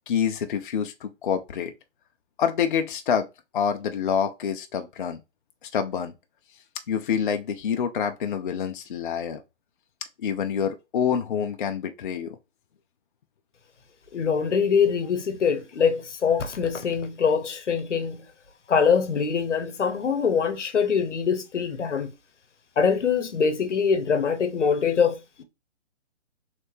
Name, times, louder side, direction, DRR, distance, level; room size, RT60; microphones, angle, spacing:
voice 1, 0.1-1.7 2.4-3.3 3.5-5.2 5.6-6.1 6.9-9.4 10.2-12.4, left 7 dB, 45° left, 0.4 m, -27 dB
voice 2, 14.1-18.2 18.7-22.1 22.8-25.4, left 6 dB, 85° left, 0.9 m, -23 dB
3.3 x 3.2 x 2.7 m
hypercardioid pair, 145°, 35 cm